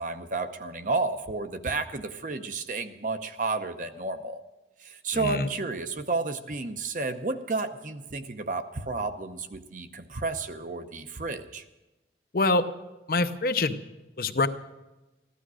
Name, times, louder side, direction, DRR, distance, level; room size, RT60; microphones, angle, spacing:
voice 1, 0.0-4.4 4.8-11.6, right 3 dB, 45° right, 8 dB, 0.8 m, -32 dB
voice 2, 5.1-5.5 12.3-12.6 13.1-13.7 14.2-14.5, left 3 dB, 55° left, 9 dB, 0.7 m, -24 dB
15.0 x 12.0 x 6.2 m, 1.1 s
head